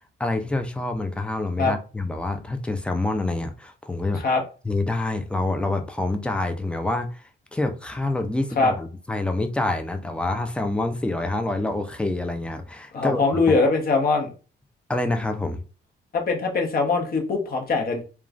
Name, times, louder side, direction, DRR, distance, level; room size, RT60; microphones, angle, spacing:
voice 1, 0.2-4.2 4.6-7.2 7.5-13.6 14.9-15.6, left 2 dB, 5° left, 0.4 m, -27 dB
voice 2, 12.9-14.3 16.1-18.0, left 3 dB, 50° left, 1.0 m, -22 dB
3.0 x 2.3 x 2.5 m
cardioid pair, 90°, 20 cm